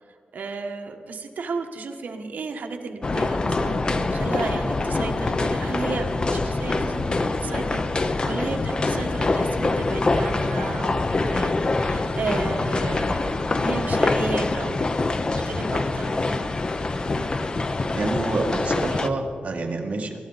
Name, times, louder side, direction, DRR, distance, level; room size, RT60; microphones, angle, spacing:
voice 1, 0.3-6.1 6.3-16.5, right 4 dB, 70° right, 4 dB, 1.3 m, -34 dB
sound 1, 3.0-16.3, equal, 45° left, 4.3 m, -44 dB
sound 2, 3.0-19.1, left 3 dB, 30° left, 0.6 m, -25 dB
voice 2, 18.0-20.2, right 3 dB, 50° right, 1 dB, 1.7 m, -27 dB
21.5 x 13.0 x 4.0 m, 2.2 s
wide cardioid pair, 180°, 3 cm